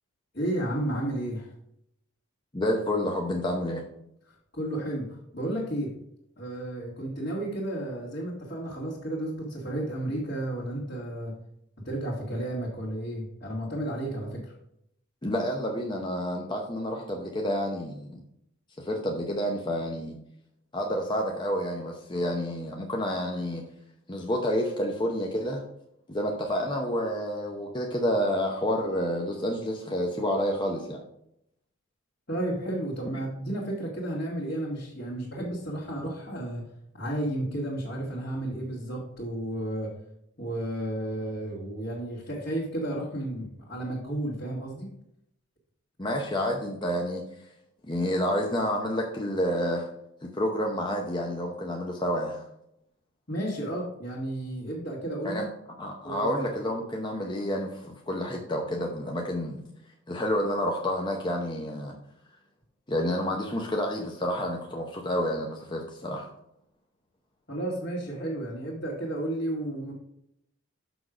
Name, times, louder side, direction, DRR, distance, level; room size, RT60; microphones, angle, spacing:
voice 1, 0.3-1.5 4.5-5.9 6.4-11.4 11.8-14.5 32.3-36.6 36.9-39.9 40.4-44.9 53.3-55.4 56.0-56.5 67.5-69.9, right 1 dB, 45° left, -6 dB, 1.9 m, -32 dB
voice 2, 2.5-3.8 15.2-18.2 18.8-20.1 20.7-23.6 24.1-25.6 26.1-31.0 46.0-47.2 47.9-49.9 50.2-52.5 55.2-55.4 55.8-59.6 60.1-61.9 62.9-66.3, equal, 20° left, 0 dB, 0.8 m, -29 dB
6.4 x 6.1 x 5.0 m, 0.78 s
head